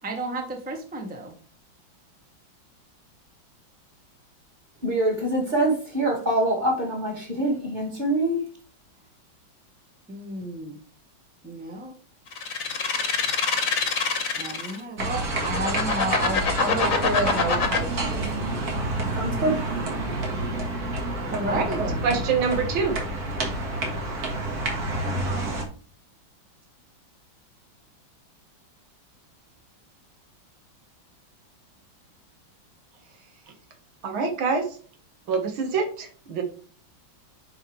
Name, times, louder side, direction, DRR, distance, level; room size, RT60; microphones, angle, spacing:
voice 1, 0.0-1.3 10.1-10.8 11.4-12.0 14.4-18.3 21.3-22.0, right 2 dB, 5° right, 3 dB, 1.0 m, -31 dB
voice 2, 4.8-8.4 19.1-19.6, right 1 dB, 25° right, -2 dB, 2.4 m, -24 dB
sound 1, 12.3-14.8 15.3-17.8, left 5 dB, 45° left, 1.5 m, -24 dB
sound 2, 15.0-25.6, right 2 dB, 50° right, 2.1 m, -29 dB
voice 3, 22.0-23.0 34.0-34.7 35.3-36.4, right 5 dB, 90° right, 5 dB, 2.2 m, -25 dB
9.2 x 5.1 x 3.2 m, 0.42 s
omnidirectional pair, 2.2 m